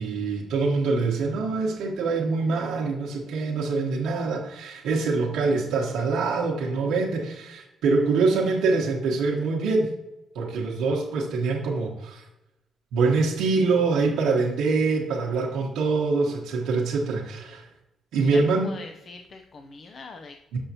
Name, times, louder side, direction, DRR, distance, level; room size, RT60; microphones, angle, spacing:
voice 1, 0.0-9.9 10.3-12.2 12.9-17.7 18.1-18.8 20.5-20.6, right 4 dB, 90° right, -3 dB, 0.9 m, -24 dB
voice 2, 18.2-20.6, left 3 dB, 50° left, 6 dB, 0.5 m, -43 dB
7.0 x 5.4 x 2.7 m, 0.94 s
cardioid pair, 90°, 0 cm